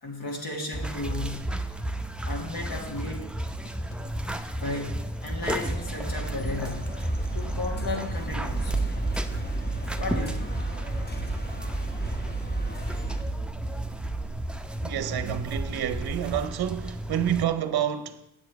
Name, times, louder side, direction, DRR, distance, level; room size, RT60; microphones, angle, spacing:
voice 1, 0.0-1.5 2.2-3.3 4.6-4.9 5.2-6.9 7.3-8.8 10.0-10.6, left 2 dB, 50° left, 2.1 m, -34 dB
sound 1, 0.7-17.5, right 1 dB, ahead, 0.7 m, -33 dB
Drum kit, 2.6-5.0, left 8 dB, 90° left, 0.6 m, -50 dB
sound 2, 5.5-13.2, right 3 dB, 20° left, 1.5 m, -32 dB
voice 2, 14.8-18.3, right 10 dB, 55° right, 0.8 m, -28 dB
7.7 x 7.3 x 4.6 m
supercardioid pair, 50°, 45 cm